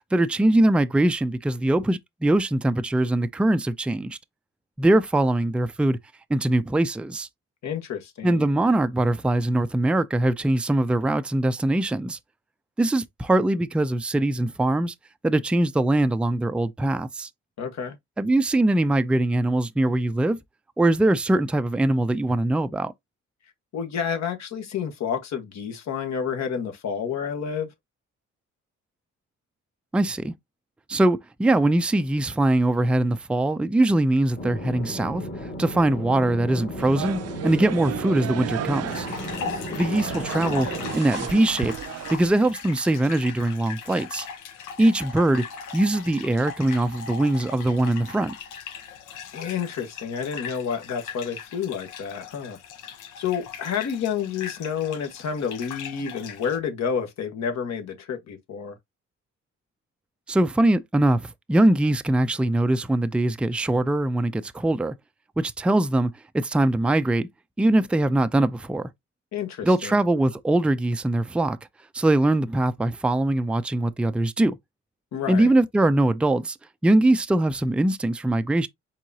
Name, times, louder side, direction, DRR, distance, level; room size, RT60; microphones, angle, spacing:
voice 1, 0.1-4.2 4.8-6.0 6.3-7.3 8.2-12.2 12.8-14.9 15.2-17.3 18.2-20.4 20.8-22.9 29.9-30.3 30.9-35.2 35.6-39.1 39.7-40.7 40.9-41.7 42.1-44.3 44.8-45.4 45.7-48.3 60.3-64.9 65.4-67.3 67.6-68.9 69.6-71.6 71.9-74.6 75.3-76.6 76.8-78.7, right 1 dB, 5° right, 0.4 m, -22 dB
voice 2, 7.6-8.5 17.6-17.9 23.7-27.7 39.4-40.0 49.3-52.6 53.2-58.7 69.3-70.0 75.1-75.5, left 7 dB, 65° left, 1.4 m, -30 dB
sound 1, 34.3-41.0, equal, 35° left, 1.9 m, -35 dB
sound 2, 36.8-42.2, right 11 dB, 55° right, 0.5 m, -34 dB
sound 3, 38.9-56.6, left 6 dB, 85° left, 0.9 m, -39 dB
4.6 x 3.7 x 2.8 m
cardioid pair, 90°, 30 cm